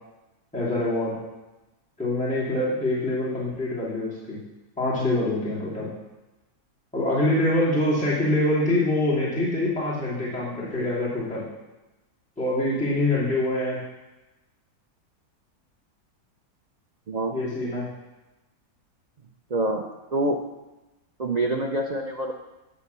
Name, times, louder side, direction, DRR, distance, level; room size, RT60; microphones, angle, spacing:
voice 1, 0.5-1.2 2.0-4.4 4.8-5.9 6.9-11.4 12.4-13.8 17.3-17.9, left 1 dB, 5° left, -9 dB, 2.5 m, -25 dB
voice 2, 19.5-19.8 20.1-20.4 21.2-22.3, right 2 dB, 85° right, 1 dB, 0.3 m, -25 dB
10.5 x 4.1 x 6.8 m, 1.1 s
omnidirectional pair, 1.7 m